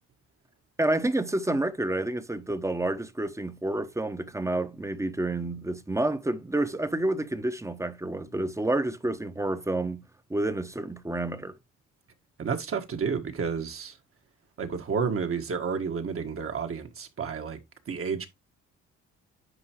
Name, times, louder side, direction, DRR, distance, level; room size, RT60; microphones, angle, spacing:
voice 1, 0.8-10.0 10.3-11.5, right 2 dB, 10° right, 1.0 m, -29 dB
voice 2, 12.4-14.0 14.6-17.6 17.9-18.3, right 6 dB, 45° right, 1.5 m, -31 dB
9.9 x 4.5 x 2.9 m
cardioid pair, 90°, 30 cm